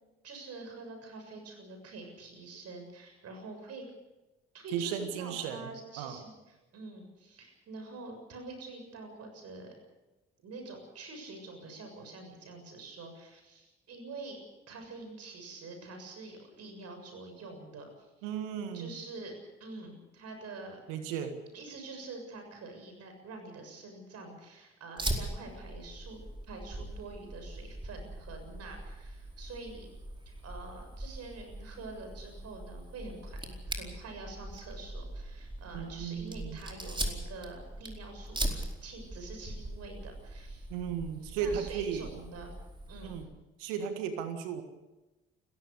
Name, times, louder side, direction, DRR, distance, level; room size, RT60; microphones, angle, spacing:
voice 1, 0.2-3.8 4.5-9.7 10.4-14.4 14.7-18.3 18.7-19.3 19.6-20.8 21.5-29.9 30.3-40.7 41.4-42.5 42.9-43.2, right 3 dB, 60° right, 4 dB, 7.1 m, -46 dB
voice 2, 4.7-5.7 6.0-6.2 18.2-18.9 20.9-21.4 35.7-36.6 40.7-42.1 43.0-43.3 43.6-44.6, right 7 dB, 75° right, 8 dB, 1.7 m, -35 dB
Fire, 25.0-43.2, right 1 dB, 15° right, 4.6 m, -41 dB
29.5 x 15.0 x 6.7 m, 1.1 s
figure-of-eight pair, 45°, 29 cm